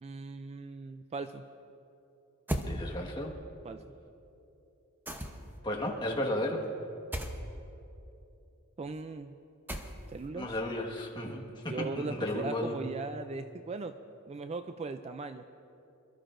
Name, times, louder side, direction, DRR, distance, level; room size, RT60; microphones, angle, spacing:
voice 1, 0.0-1.4 3.6-3.8 8.8-9.3 10.1-10.5 11.7-14.0 14.3-15.4, right 3 dB, 30° right, 9 dB, 0.3 m, -38 dB
sound 1, 2.5-2.7 5.1-5.6 7.1-7.4 9.7-10.2, right 1 dB, 10° right, 0.8 m, -35 dB
voice 2, 2.6-3.3 5.6-6.6 10.3-12.8, left 1 dB, 20° left, -1 dB, 1.5 m, -34 dB
26.0 x 13.0 x 2.6 m, 2.9 s
head